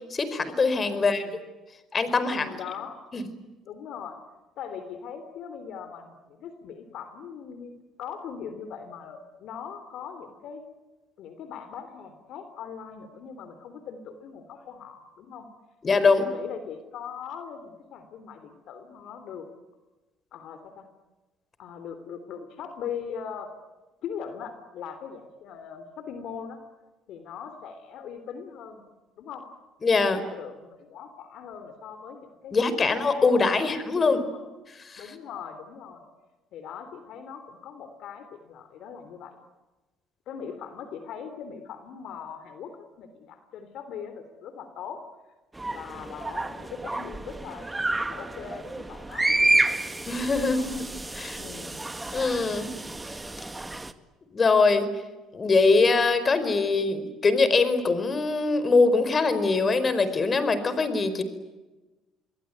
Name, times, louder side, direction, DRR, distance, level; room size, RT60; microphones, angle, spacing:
voice 1, 0.1-1.2 1.9-2.5 3.1-3.3 15.8-16.3 29.8-30.2 32.5-34.2 34.9-35.1 50.1-50.8 51.1-51.4 52.1-52.7 54.3-54.9 55.3-61.2, left 4 dB, 35° left, 12 dB, 4.7 m, -23 dB
voice 2, 0.9-1.3 2.3-3.1 3.6-4.2 4.6-7.7 8.0-10.6 11.2-15.5 16.2-19.5 20.3-20.9 21.6-23.5 24.0-26.6 27.1-28.8 29.2-29.5 29.9-34.4 35.0-36.1 36.5-39.3 40.3-45.0 45.7-47.7 48.0-49.6 50.4-50.8 51.4-51.8, left 7 dB, 65° left, 10 dB, 3.3 m, -40 dB
sound 1, 45.5-53.9, right 2 dB, 15° right, 2.0 m, -29 dB
28.0 x 22.0 x 9.5 m, 1.1 s
supercardioid pair, 75°, 0 cm